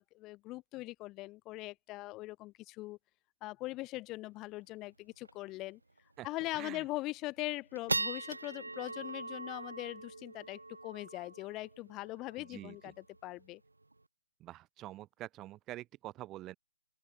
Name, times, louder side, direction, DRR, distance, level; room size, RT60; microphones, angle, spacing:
voice 1, 0.0-3.0 3.4-5.8 6.2-12.9 13.2-13.6, left 19 dB, 20° left, 0.5 m, -41 dB
sound 1, 4.4-4.5 4.8-4.9 5.2-5.5 6.0-6.1 6.6-7.0 7.4-14.0, right 2 dB, 75° right, 0.6 m, -41 dB
voice 2, 12.5-12.9 14.4-16.6, right 15 dB, 15° right, 1.0 m, -46 dB
open air
figure-of-eight pair, 135°, 0 cm